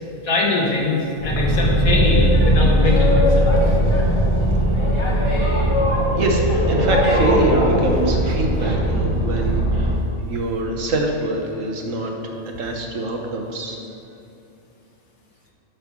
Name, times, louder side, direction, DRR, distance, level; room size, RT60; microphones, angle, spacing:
voice 1, 0.2-3.6, left 3 dB, 75° left, -2 dB, 2.0 m, -22 dB
Boat Water vehicle, 1.2-10.0, equal, 20° left, 1.2 m, -18 dB
voice 2, 6.2-10.0 10.2-12.3 12.6-13.8, right 2 dB, 65° right, 1 dB, 1.5 m, -24 dB
9.5 x 5.7 x 6.0 m, 2.7 s
omnidirectional pair, 1.5 m